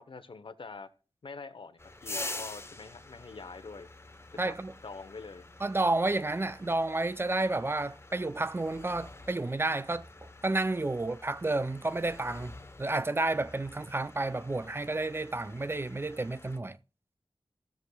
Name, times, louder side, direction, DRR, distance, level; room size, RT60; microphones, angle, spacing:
voice 1, 0.1-0.9 1.2-3.9 4.4-4.5 4.8-5.4, left 4 dB, 65° left, 0.9 m, -45 dB
sound 1, 1.8-16.6, left 2 dB, 25° left, 0.9 m, -47 dB
voice 2, 4.4-4.7 5.6-10.1 10.4-16.8, right 2 dB, 25° right, 0.5 m, -31 dB
16.0 x 6.5 x 2.3 m
wide cardioid pair, 70°, 10 cm